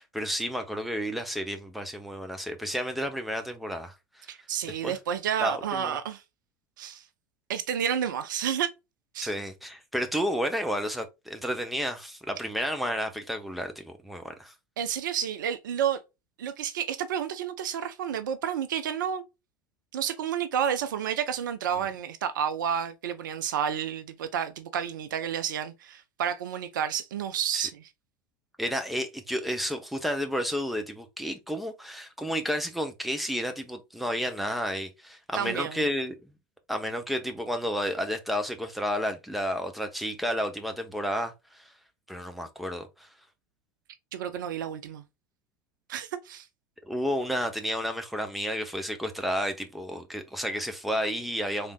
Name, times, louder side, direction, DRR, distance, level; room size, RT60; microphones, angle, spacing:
voice 1, 0.0-4.3 4.6-5.0 5.4-6.0 9.2-14.5 27.5-27.7 28.6-36.3 36.7-41.6 42.1-43.1 46.9-51.7, equal, ahead, 0.9 m, -31 dB
voice 2, 4.3-6.2 6.8-7.0 7.5-8.7 9.1-9.3 14.8-16.0 16.4-19.2 19.9-27.9 35.3-35.9 44.1-45.0 45.9-46.4, right 8 dB, 65° right, 0.6 m, -30 dB
3.7 x 3.4 x 2.4 m
figure-of-eight pair, 80°, 11 cm